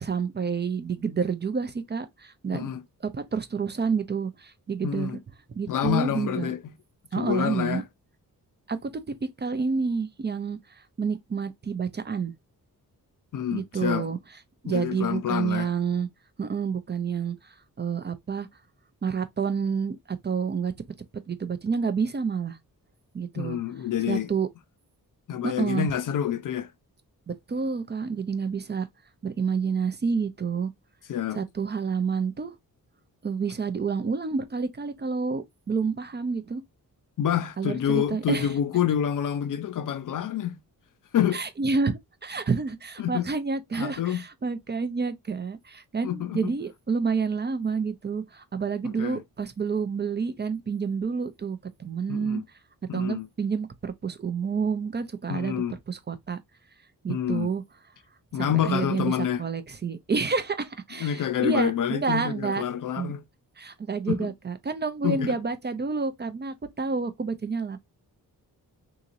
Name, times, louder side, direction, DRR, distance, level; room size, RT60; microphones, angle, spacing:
voice 1, 0.0-2.6 3.1-5.2 5.5-6.5 7.1-7.8 8.7-12.3 13.5-14.2 14.6-16.1 16.4-18.5 19.0-20.0 20.2-20.7 21.3-22.6 23.1-23.6 24.1-24.5 25.4-25.9 27.3-28.9 29.2-30.7 31.4-32.6 33.2-36.6 37.6-38.5 41.3-52.4 52.9-55.5 55.9-56.4 57.0-57.6 58.4-62.6 63.0-63.1 63.6-67.8, right 5 dB, 30° right, 0.4 m, -29 dB
voice 2, 4.8-5.2 5.7-6.6 7.2-7.8 13.3-14.1 14.6-15.7 23.4-24.3 25.3-26.7 31.1-31.4 37.2-40.6 41.1-41.4 43.0-43.3 43.7-44.2 46.0-46.5 48.8-49.2 52.1-52.4 52.9-53.3 55.3-55.8 57.1-57.5 58.3-59.4 61.0-63.2 64.1-64.3 65.0-65.4, left 9 dB, 60° left, 0.5 m, -27 dB
3.8 x 2.9 x 2.5 m
wide cardioid pair, 155°, 36 cm